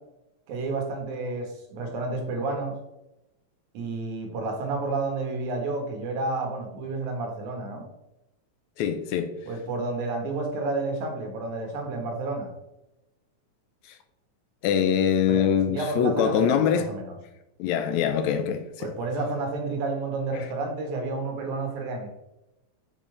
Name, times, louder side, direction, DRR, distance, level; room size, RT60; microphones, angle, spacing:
voice 1, 0.5-2.7 3.7-7.8 9.5-12.5 15.3-17.2 18.8-22.1, right 3 dB, 80° right, 2.8 m, -30 dB
voice 2, 8.8-9.3 14.6-16.9 17.6-18.9, left 8 dB, 85° left, 2.0 m, -23 dB
7.2 x 7.1 x 3.3 m
omnidirectional pair, 3.3 m